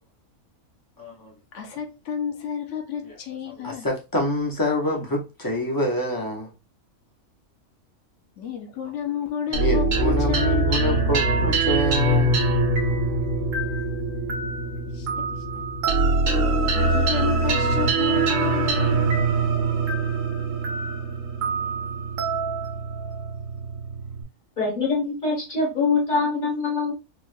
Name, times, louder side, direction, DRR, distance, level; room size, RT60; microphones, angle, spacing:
voice 1, 1.0-1.3 3.0-3.1 3.5-6.5 9.5-12.5, left 1 dB, 20° left, 0.6 m, -26 dB
voice 2, 1.5-3.9 8.4-10.6 14.9-15.3 15.5-15.6 16.7-19.2, left 7 dB, 60° left, 1.1 m, -31 dB
sound 1, 9.5-24.2, right 3 dB, 70° right, 1.2 m, -23 dB
voice 3, 24.6-26.9, left 4 dB, 40° left, 1.1 m, -24 dB
3.9 x 2.4 x 2.5 m
omnidirectional pair, 1.5 m